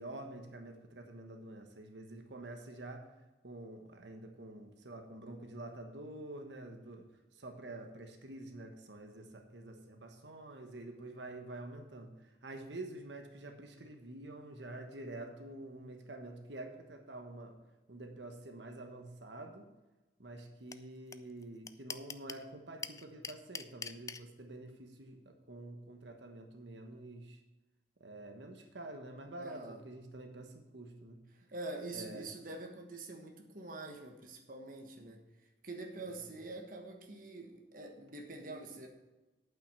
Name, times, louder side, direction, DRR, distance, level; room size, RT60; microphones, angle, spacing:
voice 1, 0.0-3.1 3.4-7.1 7.3-17.6 17.9-19.7 20.2-27.4 28.0-31.2 31.9-32.3 36.0-36.3, right 2 dB, 85° right, 4 dB, 1.2 m, -48 dB
sound 1, 20.7-20.8 21.1-21.2 21.4-22.4 22.8-24.2, left 6 dB, 20° left, 0.3 m, -41 dB
voice 2, 29.4-29.8 31.3-35.2 35.6-38.9, right 2 dB, 50° right, 2 dB, 1.3 m, -45 dB
8.9 x 5.8 x 7.4 m, 1.1 s
head